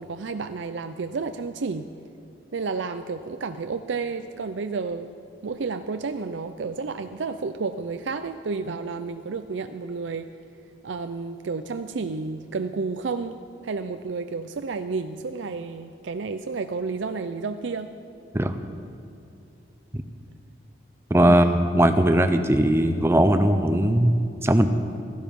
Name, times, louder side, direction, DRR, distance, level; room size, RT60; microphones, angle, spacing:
voice 1, 0.0-1.9 2.5-5.2 5.4-10.3 10.8-13.4 13.6-17.9 21.2-21.5, right 4 dB, 80° right, 9 dB, 0.5 m, -31 dB
voice 2, 21.1-24.1 24.4-24.7, right 1 dB, 15° right, 8 dB, 0.7 m, -19 dB
17.0 x 14.5 x 5.4 m, 2.6 s
head